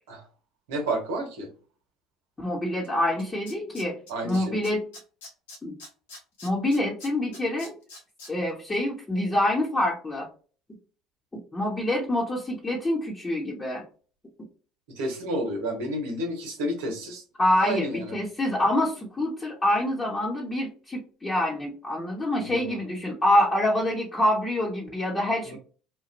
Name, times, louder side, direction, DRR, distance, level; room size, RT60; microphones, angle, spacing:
voice 1, 0.7-1.5 4.1-4.6 14.9-17.2 17.6-18.2 22.4-22.6 25.5-25.6, right 1 dB, 80° right, 2 dB, 1.1 m, -30 dB
voice 2, 2.4-4.8 5.6-5.8 6.4-7.7 8.3-10.3 11.3-13.8 17.4-25.6, left 1 dB, 20° left, -4 dB, 1.0 m, -26 dB
Tools, 2.8-2.9 3.2-4.4 4.6-8.3 8.7-8.8, left 2 dB, 85° left, 1.3 m, -44 dB
3.0 x 2.3 x 2.6 m, 0.39 s
hypercardioid pair, 70°, 0 cm